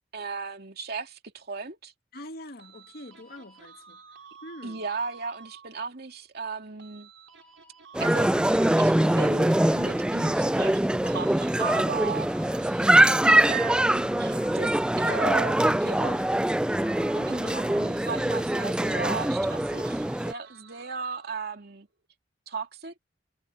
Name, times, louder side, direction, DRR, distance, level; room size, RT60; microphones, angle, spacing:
voice 1, 0.1-1.9 4.6-7.1 8.0-8.3 8.8-12.3 13.5-16.3 17.1-21.9 22.5-22.9, right 4 dB, 55° right, 2.6 m, -36 dB
voice 2, 2.1-4.0 4.4-4.8 17.4-17.7, left 1 dB, 55° left, 2.3 m, -44 dB
sound 1, 2.6-5.9 6.8-10.6 11.0-15.0 15.2-21.6, right 6 dB, 85° right, 3.5 m, -50 dB
sound 2, 7.9-20.3, right 1 dB, 5° right, 0.3 m, -23 dB
head